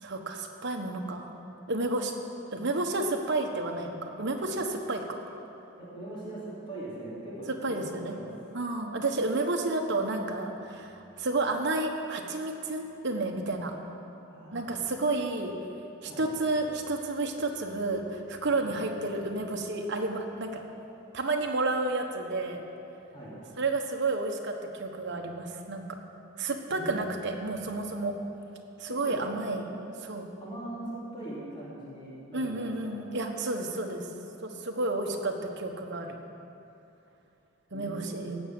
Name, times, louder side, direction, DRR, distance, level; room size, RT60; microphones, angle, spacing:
voice 1, 0.0-1.3 1.7-2.1 2.5-5.2 7.6-8.1 8.5-13.7 14.5-15.5 16.0-20.6 21.1-22.6 23.6-26.0 26.4-28.1 28.8-29.6 30.0-30.3 32.3-34.1 34.4-36.2 37.7-38.4, right 2 dB, 55° right, 3 dB, 1.2 m, -31 dB
voice 2, 5.8-8.3 14.3-14.7 16.1-16.2 18.6-18.8 23.1-23.4 26.7-27.2 28.9-29.2 30.4-32.9 37.7-38.4, right 1 dB, 25° left, -8 dB, 3.3 m, -41 dB
17.0 x 6.3 x 7.7 m, 2.9 s
head